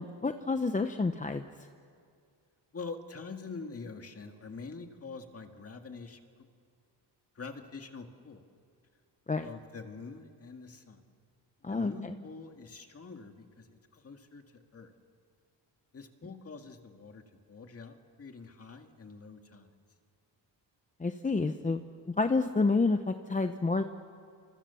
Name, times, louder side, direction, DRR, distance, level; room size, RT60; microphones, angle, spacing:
voice 1, 0.0-1.4 9.3-9.5 11.6-12.1 21.0-23.8, left 3 dB, 20° left, 7 dB, 0.8 m, -29 dB
voice 2, 2.7-6.2 7.4-8.4 9.4-11.0 11.6-14.9 15.9-17.2 17.5-19.7, left 4 dB, 35° left, 5 dB, 2.0 m, -45 dB
28.5 x 27.0 x 7.0 m, 2.2 s
wide cardioid pair, 140°, 44 cm